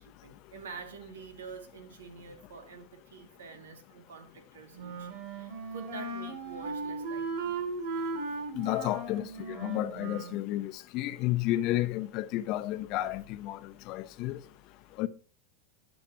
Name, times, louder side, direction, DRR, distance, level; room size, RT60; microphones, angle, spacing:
voice 1, 0.0-7.5 11.7-12.1 12.3-12.5 12.9-13.0 13.5-14.0 14.2-14.4, right 5 dB, 85° right, 2.2 m, -48 dB
Wind instrument woodwind instrument, 4.7-10.4, right 3 dB, 65° right, 2.7 m, -37 dB
voice 2, 8.5-14.4 15.0-15.1, left 15 dB, 50° left, 0.8 m, -32 dB
11.5 x 7.4 x 2.9 m
hypercardioid pair, 105°, 0 cm